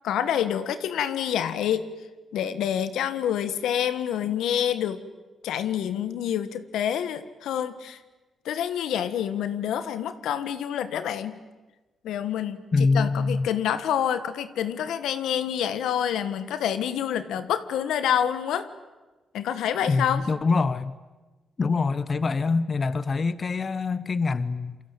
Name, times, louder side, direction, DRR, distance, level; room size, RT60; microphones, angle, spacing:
voice 1, 0.0-1.9 2.3-5.0 5.4-8.0 8.4-11.4 12.0-12.6 12.9-18.7 19.3-20.2, left 9 dB, 85° left, 12 dB, 1.5 m, -27 dB
voice 2, 12.7-13.5 19.9-21.0 21.6-24.8, left 4 dB, 45° left, 15 dB, 1.0 m, -24 dB
27.5 x 23.5 x 9.1 m, 1.2 s
cardioid pair, 75°, 0 cm